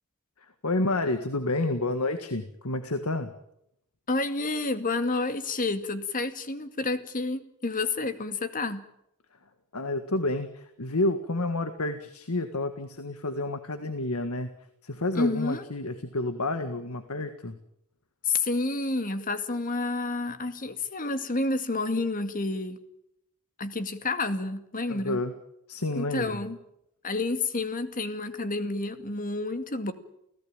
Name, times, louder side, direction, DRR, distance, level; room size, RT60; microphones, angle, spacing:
voice 1, 0.4-3.3 9.7-14.5 14.8-17.6 24.9-25.3 25.7-26.4, left 2 dB, 90° left, 9 dB, 1.7 m, -30 dB
voice 2, 4.1-8.8 15.1-15.7 18.2-22.8 23.6-25.2 26.0-26.6 27.0-29.9, left 3 dB, 40° left, 9 dB, 2.2 m, -29 dB
29.5 x 16.5 x 9.0 m, 0.80 s
head